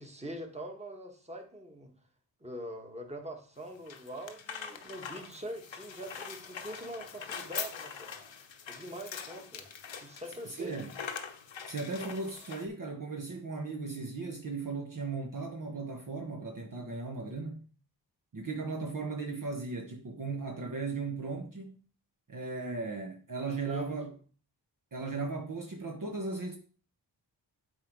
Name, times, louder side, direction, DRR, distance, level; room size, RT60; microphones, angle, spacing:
voice 1, 0.0-1.9 2.4-8.1 8.7-9.7 10.0-10.7 23.7-24.0, right 1 dB, 15° right, 1.6 m, -43 dB
sound 1, 3.6-12.7, left 6 dB, 75° left, 0.9 m, -43 dB
voice 2, 10.4-10.9 11.7-17.6 18.3-21.8 22.3-24.1 24.9-26.6, right 3 dB, 45° right, 1.0 m, -37 dB
8.4 x 3.7 x 4.8 m
cardioid pair, 50°, 46 cm